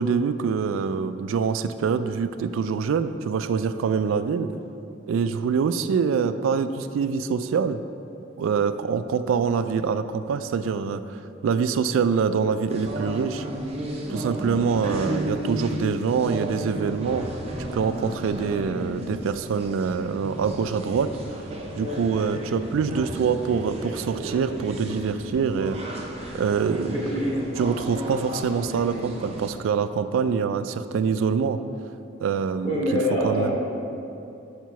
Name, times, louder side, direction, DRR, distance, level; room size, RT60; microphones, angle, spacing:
voice 1, 0.0-4.5 5.1-7.8 8.4-11.2 11.4-13.5 14.1-17.3 17.6-21.1 21.8-25.8 26.3-27.2 27.6-31.6 32.2-32.8 33.2-33.6, right 6 dB, 85° right, 12 dB, 0.3 m, -25 dB
sound 1, 12.7-29.5, right 1 dB, 30° right, 0.6 m, -33 dB
voice 2, 26.9-27.4 32.6-33.6, equal, 25° left, -6 dB, 1.4 m, -25 dB
5.0 x 4.6 x 5.6 m, 2.7 s
head